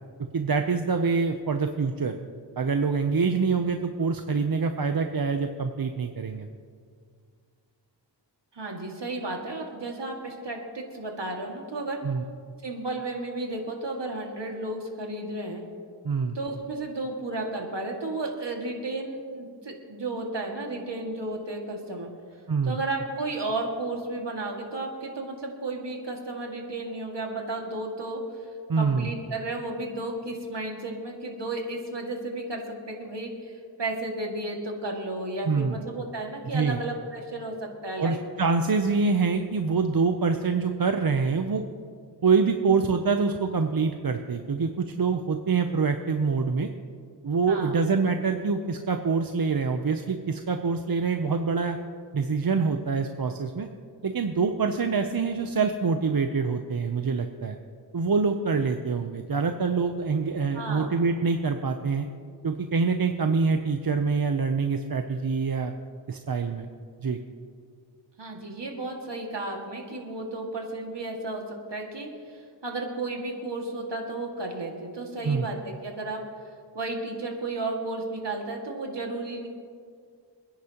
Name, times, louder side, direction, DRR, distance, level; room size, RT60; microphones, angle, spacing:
voice 1, 0.3-2.2 2.6-6.5 12.0-12.2 16.0-16.4 22.5-22.8 28.7-29.1 35.5-35.8 36.5-36.8 38.0-41.6 42.2-46.7 47.2-51.8 52.1-53.7 54.0-57.6 57.9-62.1 62.4-65.7 66.1-66.7 67.0-67.2 75.2-75.5, right 4 dB, 55° right, 6 dB, 0.7 m, -25 dB
voice 2, 8.5-12.0 12.6-15.6 16.3-22.1 22.6-28.2 28.8-38.2 47.5-47.8 60.5-60.9 68.2-76.2 76.7-79.5, right 2 dB, 70° right, 0 dB, 2.1 m, -33 dB
27.0 x 10.0 x 2.9 m, 2.1 s
wide cardioid pair, 70°, 43 cm